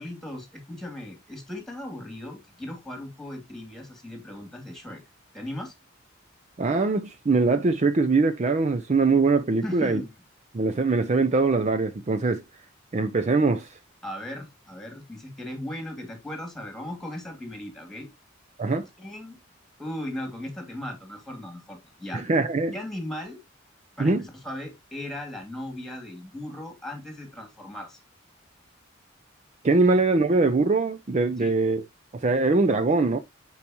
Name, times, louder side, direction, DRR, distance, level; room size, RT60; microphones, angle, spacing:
voice 1, 0.0-5.0 5.3-5.7 9.6-10.2 14.0-18.1 19.0-19.4 19.8-22.2 22.7-23.4 24.0-28.0 31.4-31.5, left 1 dB, ahead, 2.4 m, -37 dB
voice 2, 6.6-10.0 10.5-12.4 12.9-13.8 18.6-18.8 22.1-22.7 24.0-24.2 29.6-31.8 32.1-33.2, right 3 dB, 35° right, 0.5 m, -22 dB
8.8 x 4.6 x 2.9 m
head